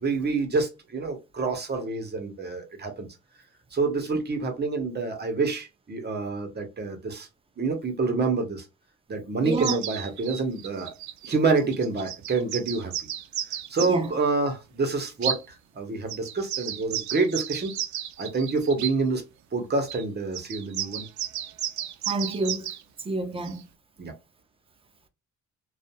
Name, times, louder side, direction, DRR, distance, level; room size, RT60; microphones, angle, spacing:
voice 1, 0.0-3.1 3.7-7.3 7.6-8.6 9.1-10.9 11.2-12.9 13.7-17.7 18.2-19.2 19.5-21.1 24.0-24.1, right 3 dB, 35° right, 1.0 m, -27 dB
voice 2, 9.4-9.8 13.8-14.1 22.1-22.7 23.1-23.6, right 3 dB, 20° right, 0.5 m, -28 dB
sound 1, 9.5-14.1 15.2-15.4 16.1-18.9 19.9-20.0 20.3-22.8 23.4-23.6, right 10 dB, 70° right, 0.5 m, -33 dB
2.6 x 2.4 x 2.2 m
cardioid pair, 90°, 30 cm